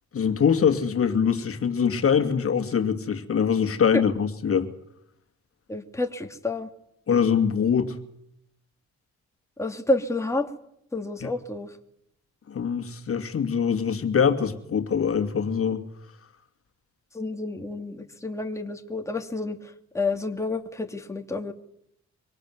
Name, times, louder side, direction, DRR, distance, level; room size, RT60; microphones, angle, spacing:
voice 1, 0.1-4.7 7.1-7.9 11.2-11.3 12.5-15.8, left 7 dB, 50° left, 6 dB, 2.5 m, -23 dB
voice 2, 5.7-6.7 9.6-10.5 10.9-11.8 17.1-21.5, left 2 dB, 10° left, 4 dB, 2.4 m, -29 dB
24.5 x 18.5 x 9.6 m, 0.74 s
cardioid pair, 90°, 30 cm